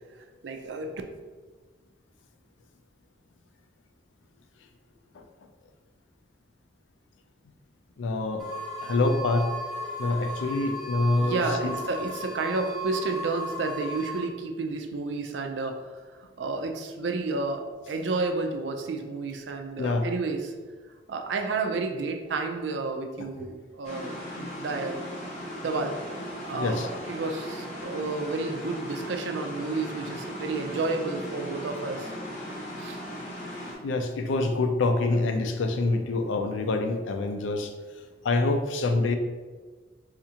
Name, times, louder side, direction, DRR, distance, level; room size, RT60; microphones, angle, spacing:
voice 1, 0.4-0.9 11.2-20.5 21.1-25.0 25.6-26.0 26.4-32.1 32.8-33.0, right 3 dB, 70° right, 5 dB, 0.4 m, -31 dB
voice 2, 8.0-8.4 8.8-9.5 10.0-11.7 19.8-20.0 26.5-26.9 33.8-37.7 38.2-39.2, left 2 dB, 85° left, 6 dB, 0.4 m, -26 dB
sound 1, 8.4-14.2, equal, ahead, 0.7 m, -35 dB
sound 2, 23.8-33.7, equal, 40° left, 0.7 m, -37 dB
4.2 x 2.4 x 2.8 m, 1.4 s
head